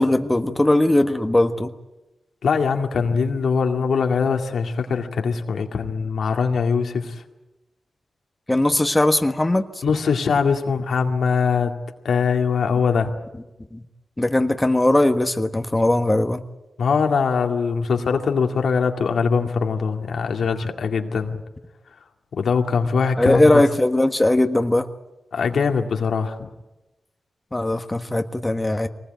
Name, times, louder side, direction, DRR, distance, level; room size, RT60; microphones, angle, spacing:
voice 1, 0.0-1.7 8.5-9.6 13.7-13.8 14.2-16.4 23.2-24.9 27.5-28.9, left 1 dB, 15° left, 7 dB, 1.3 m, -19 dB
voice 2, 2.4-7.2 9.8-11.8 12.0-13.1 16.8-21.4 22.3-23.6 25.3-26.5, left 5 dB, 85° left, 4 dB, 2.1 m, -22 dB
23.5 x 19.5 x 9.2 m, 1.0 s
cardioid pair, 80°, 0 cm